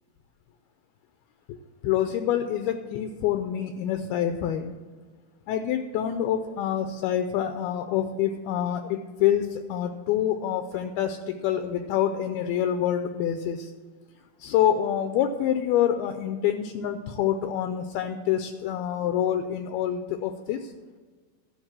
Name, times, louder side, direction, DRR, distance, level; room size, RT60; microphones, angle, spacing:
voice 1, 1.8-4.7 5.5-13.7 14.4-20.7, left 10 dB, 80° left, 7 dB, 2.4 m, -26 dB
12.5 x 6.2 x 7.4 m, 1.4 s
omnidirectional pair, 4.8 m